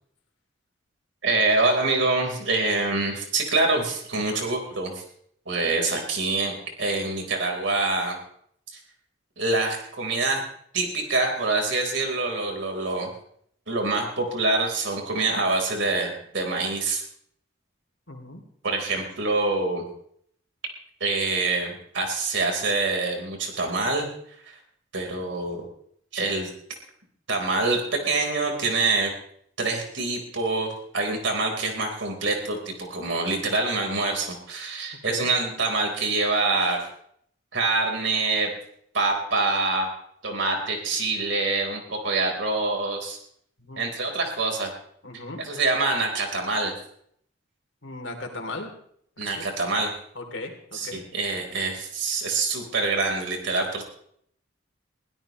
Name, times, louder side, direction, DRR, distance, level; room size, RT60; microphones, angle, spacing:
voice 1, 1.2-5.0 5.5-8.2 8.7-8.8 9.4-10.4 10.7-13.1 13.7-17.0 18.6-19.9 21.0-24.1 24.4-24.6 24.9-25.6 26.1-26.5 27.3-29.1 29.6-36.9 37.5-38.5 38.9-39.9 40.2-43.2 43.8-44.7 45.4-46.7 49.2-49.9 50.7-53.8, right 3 dB, 70° right, 2 dB, 4.2 m, -25 dB
voice 2, 18.1-18.4 35.1-35.3 43.6-43.8 45.0-45.4 47.8-48.7 49.2-49.5 50.1-51.0, left 2 dB, 75° left, 3 dB, 3.0 m, -37 dB
22.0 x 16.5 x 3.1 m, 0.66 s
head